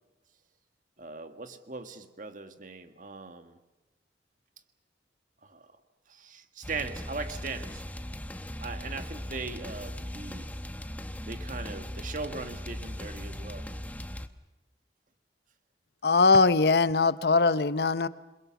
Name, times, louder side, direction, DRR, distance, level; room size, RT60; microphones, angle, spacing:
voice 1, 1.0-3.6 5.4-5.6 6.1-7.8 8.6-10.5 11.3-13.7, right 4 dB, 45° right, 9 dB, 1.6 m, -39 dB
sound 1, 6.6-14.3, left 1 dB, 10° left, 0.9 m, -39 dB
voice 2, 16.0-18.1, left 3 dB, 65° left, 15 dB, 0.8 m, -21 dB
28.0 x 22.0 x 7.1 m, 1.1 s
head